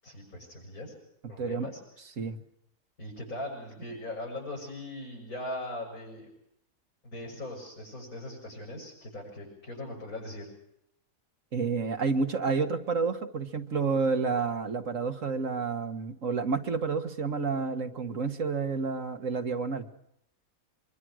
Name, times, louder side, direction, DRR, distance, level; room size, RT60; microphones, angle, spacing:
voice 1, 0.0-0.9 1.3-1.8 3.0-6.3 7.0-10.5, left 1 dB, 90° left, -5 dB, 7.8 m, -40 dB
voice 2, 1.4-1.7 2.2-2.4 11.5-19.9, right 4 dB, 65° right, 7 dB, 1.9 m, -29 dB
25.0 x 24.0 x 6.4 m, 0.77 s
omnidirectional pair, 1.5 m